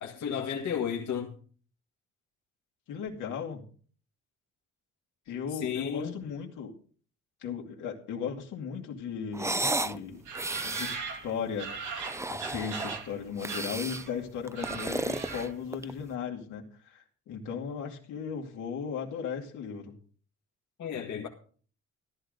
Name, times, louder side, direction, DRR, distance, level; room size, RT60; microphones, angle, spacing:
voice 1, 0.0-1.3 5.5-6.1 20.8-21.3, left 8 dB, 70° left, 1.9 m, -33 dB
voice 2, 2.9-3.6 5.3-6.7 7.4-10.2 10.6-11.7 12.3-20.0, left 6 dB, 90° left, 2.6 m, -36 dB
sound 1, 9.3-10.0 10.3-11.0 11.9-13.0 13.4-14.1 14.5-16.0, right 2 dB, 10° right, 0.6 m, -33 dB
sound 2, 10.3-13.2 13.5-14.2 14.4-15.7, right 5 dB, 75° right, 2.5 m, -39 dB
14.0 x 12.0 x 4.0 m
cardioid pair, 90°, 30 cm